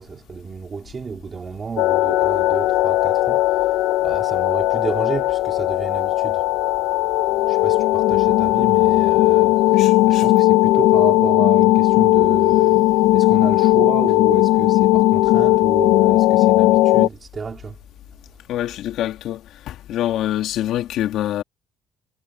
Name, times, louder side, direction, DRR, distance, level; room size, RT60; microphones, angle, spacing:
voice 1, 0.0-6.5 7.5-17.8, right 5 dB, 25° right, 2.7 m, -32 dB
sound 1, 1.8-17.1, left 17 dB, 80° left, 0.8 m, -17 dB
voice 2, 9.7-10.3 18.5-21.4, left 12 dB, 60° left, 2.8 m, -26 dB
cardioid pair, 135°, 0 cm